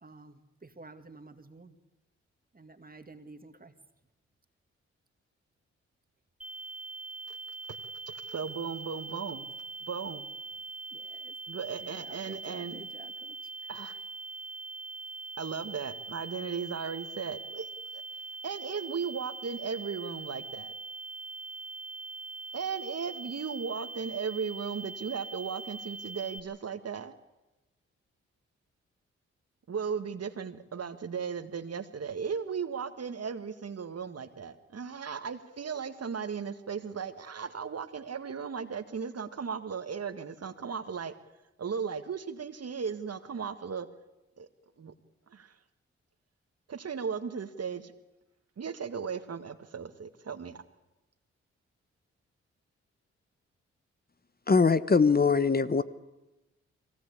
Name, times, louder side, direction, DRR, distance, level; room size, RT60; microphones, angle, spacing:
voice 1, 0.0-1.8 2.5-3.7 10.9-11.3 11.8-13.4, right 3 dB, 30° right, 8 dB, 2.2 m, -51 dB
sound 1, 6.4-26.4, right 3 dB, 5° right, 3.0 m, -42 dB
voice 2, 8.1-9.5 9.8-10.2 11.5-12.8 13.7-14.0 15.4-18.0 18.4-20.7 22.5-27.1 29.7-41.1 41.6-43.9 44.4-44.5 44.8-44.9 45.3-45.5 46.7-47.9 48.6-50.6, right 6 dB, 55° right, 10 dB, 1.8 m, -36 dB
voice 3, 54.5-55.8, left 4 dB, 30° left, 14 dB, 1.1 m, -22 dB
22.5 x 18.0 x 8.5 m, 1.0 s
supercardioid pair, 40°, 29 cm